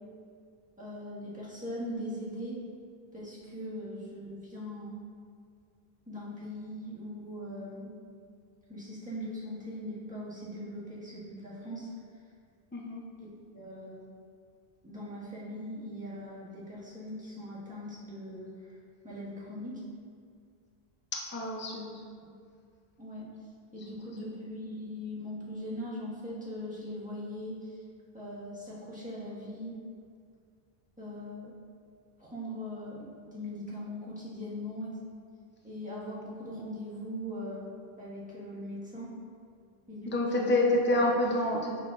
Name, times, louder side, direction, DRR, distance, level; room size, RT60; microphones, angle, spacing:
voice 1, 0.8-2.6 3.1-5.0 6.1-7.9 8.7-11.9 13.2-13.3 13.5-14.1 14.8-18.5 19.0-19.8 21.7-21.9 23.0-23.3 23.7-27.6 28.1-29.8 31.0-31.5 32.2-35.0 35.6-37.7 38.0-39.1 39.9-40.5, equal, 5° right, -9 dB, 1.4 m, -40 dB
voice 2, 21.1-21.8 40.1-41.8, left 1 dB, 15° left, -1 dB, 0.5 m, -27 dB
6.6 x 5.9 x 2.4 m, 2.2 s
omnidirectional pair, 1.1 m